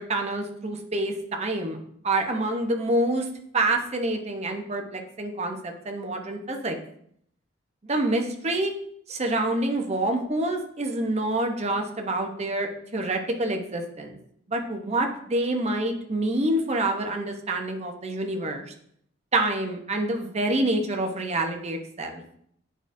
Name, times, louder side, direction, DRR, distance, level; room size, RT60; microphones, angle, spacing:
voice 1, 0.0-1.8 2.0-3.3 3.5-6.8 7.8-8.7 9.1-14.2 14.5-18.6 19.3-22.2, right 2 dB, 35° right, 3 dB, 0.8 m, -27 dB
8.8 x 5.0 x 2.6 m, 0.68 s
head